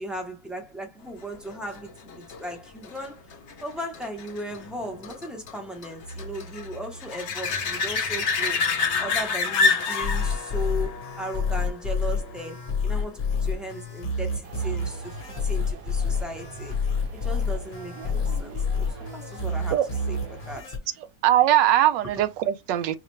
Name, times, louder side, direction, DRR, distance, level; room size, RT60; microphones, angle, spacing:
voice 1, 0.0-3.3 3.6-8.6 9.0-16.7 17.1-20.7, right 1 dB, ahead, 0.3 m, -37 dB
sound 1, 1.5-12.7 18.4-18.5, left 4 dB, 60° left, 0.8 m, -29 dB
sound 2, 10.0-20.8, left 4 dB, 40° left, 1.1 m, -28 dB
sound 3, 14.4-20.6, right 3 dB, 60° right, 1.1 m, -43 dB
voice 2, 21.2-23.0, right 12 dB, 85° right, 1.2 m, -20 dB
4.8 x 2.1 x 3.1 m
omnidirectional pair, 1.9 m